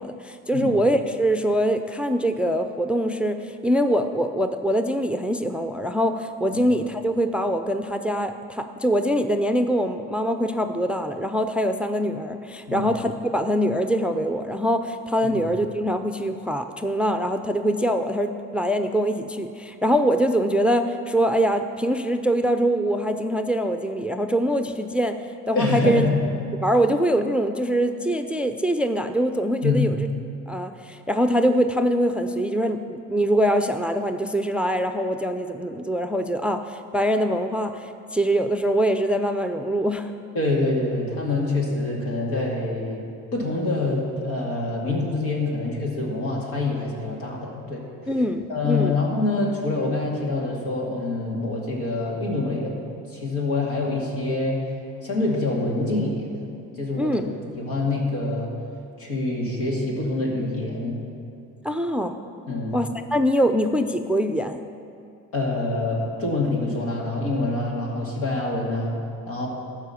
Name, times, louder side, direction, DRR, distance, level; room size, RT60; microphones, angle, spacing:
voice 1, 0.0-25.2 25.5-26.1 26.6-30.0 30.5-40.1 48.1-49.0 57.0-57.2 61.6-62.2 62.7-64.6, equal, 5° right, 8 dB, 0.5 m, -23 dB
voice 2, 25.5-26.1 29.6-29.9 40.3-43.0 43.3-47.9 48.5-54.7 55.0-56.4 56.8-58.5 59.0-61.0 62.5-62.8 65.3-68.9 69.3-69.5, left 2 dB, 80° left, -2 dB, 2.3 m, -26 dB
13.0 x 4.9 x 7.0 m, 2.5 s
supercardioid pair, 70°, 35 cm